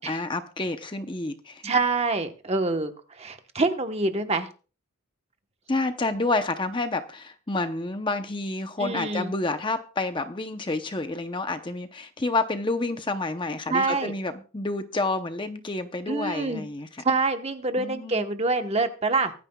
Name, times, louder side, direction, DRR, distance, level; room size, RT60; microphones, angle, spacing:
voice 1, 0.0-1.7 5.7-16.9 17.8-18.2, left 2 dB, 20° left, 8 dB, 0.7 m, -29 dB
voice 2, 1.6-2.9 3.2-4.5 8.8-9.3 13.7-14.1 16.1-16.6 17.0-19.3, right 3 dB, 30° right, 7 dB, 1.1 m, -26 dB
24.0 x 9.6 x 2.3 m, 0.37 s
head